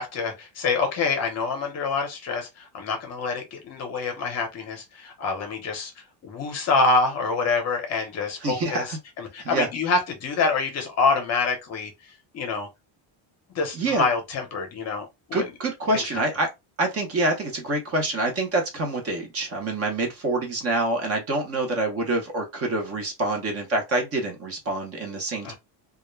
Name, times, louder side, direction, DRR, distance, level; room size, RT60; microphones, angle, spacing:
voice 1, 0.0-5.9 6.2-11.9 12.3-12.7 13.5-15.5 15.9-16.2 25.4-25.5, left 4 dB, 35° left, 0.7 m, -26 dB
voice 2, 8.4-9.0 9.4-9.7 13.7-14.0 15.3-16.5 16.8-25.5, right 2 dB, 30° right, 0.6 m, -26 dB
2.3 x 2.0 x 3.0 m
cardioid pair, 175°, 49 cm